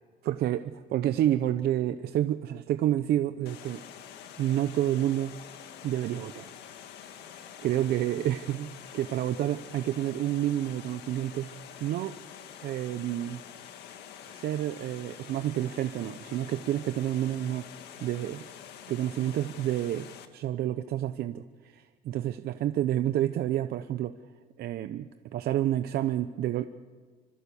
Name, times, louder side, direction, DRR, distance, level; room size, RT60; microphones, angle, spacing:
voice 1, 0.2-3.8 4.4-5.3 5.8-6.5 7.2-7.3 7.6-11.5 11.8-12.1 12.6-13.4 14.3-17.6 18.0-18.4 18.9-20.1 20.3-24.1 24.6-26.7, right 12 dB, 70° right, 10 dB, 0.8 m, -29 dB
Water, 3.5-20.3, left 9 dB, 75° left, 1.9 m, -47 dB
25.5 x 25.5 x 7.1 m, 1.5 s
cardioid pair, 110°, 17 cm